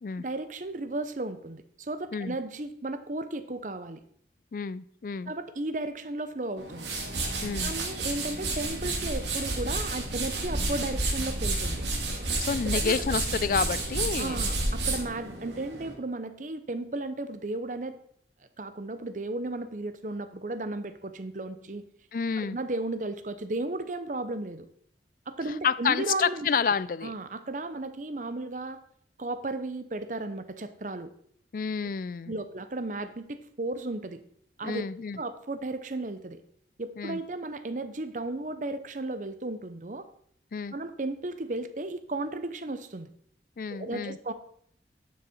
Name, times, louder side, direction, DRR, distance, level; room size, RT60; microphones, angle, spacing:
voice 1, 0.2-4.0 5.3-6.9 7.6-11.8 12.6-13.2 14.2-18.0 18.6-21.8 22.4-24.7 25.3-26.5 27.0-28.8 29.2-31.1 32.3-34.2 34.6-34.8 35.2-36.4 36.8-40.0 40.7-43.1 43.7-44.3, right 2 dB, 45° right, 10 dB, 0.7 m, -34 dB
voice 2, 4.5-5.3 7.4-7.7 12.4-14.4 22.1-22.6 25.6-27.1 31.5-32.4 34.6-35.2 37.0-37.2 40.5-40.8 43.6-44.2, left 6 dB, 50° left, 17 dB, 0.4 m, -29 dB
sound 1, 6.6-15.9, right 2 dB, 80° right, 2.1 m, -31 dB
10.5 x 6.3 x 4.4 m, 0.65 s
head